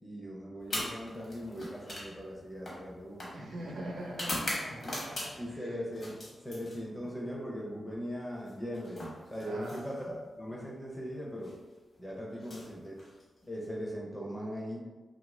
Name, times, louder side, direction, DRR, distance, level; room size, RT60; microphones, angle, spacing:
voice 1, 0.0-3.3 4.7-5.0 5.4-11.6 12.0-13.0 13.5-14.9, equal, 10° left, -3 dB, 0.5 m, -40 dB
sound 1, 0.6-5.6 5.9-7.2 8.4-10.2 11.3-11.5 12.3-13.5, left 1 dB, 40° left, 0.8 m, -41 dB
voice 2, 3.3-5.8 9.4-9.8, right 1 dB, 80° right, -2 dB, 0.6 m, -42 dB
2.8 x 2.4 x 3.1 m, 1.2 s
wide cardioid pair, 180°, 0 cm